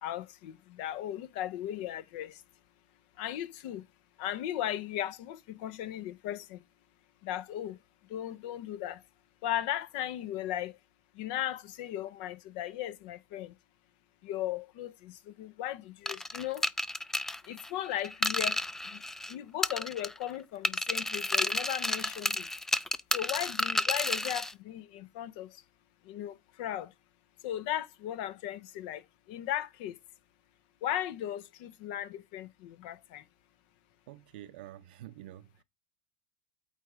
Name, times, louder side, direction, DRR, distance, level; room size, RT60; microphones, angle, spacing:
voice 1, 0.0-2.4 3.2-3.8 4.2-6.6 7.2-7.8 8.1-9.0 9.4-10.7 11.2-13.5 14.2-16.6 17.5-18.6 18.9-19.0 19.3-22.5 23.1-25.6 26.1-26.9 27.4-29.0 29.3-30.0 30.8-33.2, left 12 dB, 65° left, 0.7 m, -36 dB
sound 1, 16.1-19.3 19.6-20.3 20.6-24.5, left 1 dB, 5° left, 0.4 m, -31 dB
voice 2, 34.1-35.6, right 13 dB, 75° right, 0.6 m, -48 dB
8.4 x 3.4 x 4.9 m
hypercardioid pair, 90°, 5 cm